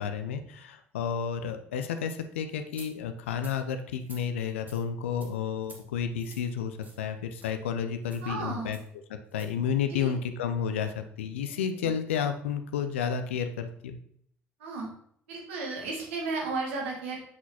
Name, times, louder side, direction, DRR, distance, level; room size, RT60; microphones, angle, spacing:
voice 1, 0.0-8.8 9.1-14.0, left 7 dB, 80° left, 8 dB, 0.5 m, -31 dB
sound 1, 2.7-2.9 3.4-3.6 4.0-4.2 4.7-4.8 5.2-5.3 5.6-5.8 6.2-6.4 6.8-7.0 7.4-7.5 8.0-8.3 8.7-8.9 9.3-9.5, right 2 dB, 30° right, 1.6 m, -50 dB
voice 2, 8.2-8.8 9.9-10.1 11.8-11.9 14.6-14.9 15.3-17.3, right 3 dB, 75° right, 0 dB, 1.4 m, -34 dB
6.0 x 6.0 x 2.8 m, 0.66 s
figure-of-eight pair, 55°, 7 cm